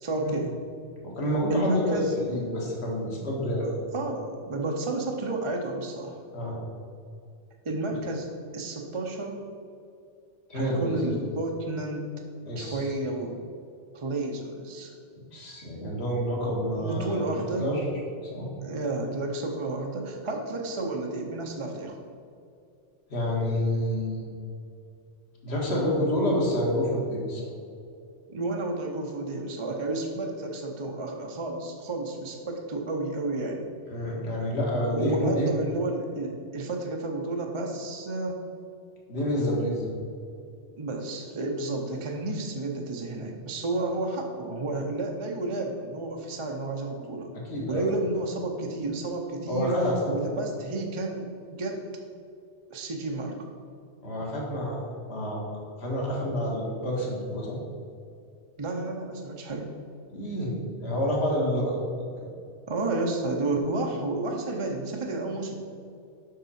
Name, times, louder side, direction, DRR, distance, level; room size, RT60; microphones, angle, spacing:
voice 1, 0.0-0.5 1.5-2.1 3.6-6.2 7.6-9.4 10.5-12.1 12.6-13.4 13.9-14.9 16.7-17.7 18.6-22.0 28.3-33.7 34.9-38.4 40.8-47.3 47.7-49.7 50.1-51.8 52.7-53.5 58.6-59.7 62.7-65.5, right 2 dB, 30° right, 1 dB, 0.7 m, -31 dB
voice 2, 1.0-3.8 6.3-6.6 10.5-11.1 12.4-12.9 15.2-17.8 18.3-18.5 23.1-24.3 25.4-27.4 33.9-35.6 39.1-39.9 47.5-47.9 49.5-50.1 54.0-55.4 55.8-57.6 60.1-60.5 60.8-61.8, equal, 60° left, -3 dB, 1.9 m, -28 dB
7.6 x 6.0 x 4.2 m, 2.4 s
omnidirectional pair, 1.2 m